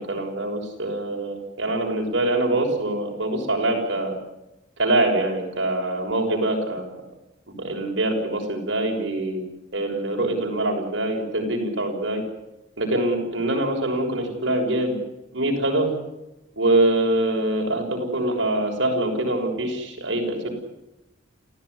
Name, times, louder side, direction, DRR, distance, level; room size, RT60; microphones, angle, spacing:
voice 1, 0.1-4.1 4.8-6.8 7.6-9.4 9.7-12.2 12.8-15.0 15.3-15.9 16.6-20.5, right 1 dB, 75° right, 1 dB, 6.5 m, -24 dB
28.5 x 15.5 x 9.9 m, 0.94 s
head